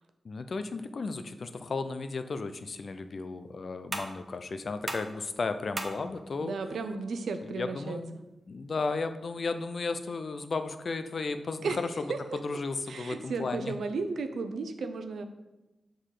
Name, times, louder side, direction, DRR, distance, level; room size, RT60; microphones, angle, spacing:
voice 1, 0.2-6.6 7.4-8.2 8.5-12.1 12.4-13.7, left 3 dB, 55° left, 10 dB, 0.5 m, -34 dB
sound 1, 2.4-9.4, right 2 dB, 35° right, 0.9 m, -44 dB
voice 2, 6.4-8.0 11.6-11.8 12.1-12.2 12.9-15.2, right 4 dB, 85° right, 8 dB, 0.6 m, -34 dB
6.6 x 3.9 x 4.9 m, 1.0 s
cardioid pair, 80°, 0 cm